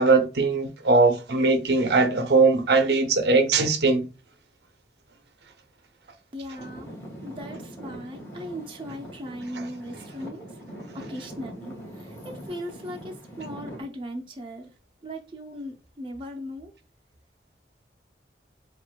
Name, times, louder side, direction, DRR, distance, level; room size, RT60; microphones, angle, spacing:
voice 1, 0.0-4.1 9.5-9.6, right 3 dB, 75° right, 0.7 m, -20 dB
voice 2, 6.3-6.9 7.2-10.4 11.1-14.7 15.0-16.7, equal, 30° right, 0.6 m, -38 dB
Traffic noise roadway noise / Engine, 6.6-13.8, equal, 15° left, 2.1 m, -42 dB
7.5 x 2.5 x 2.2 m
head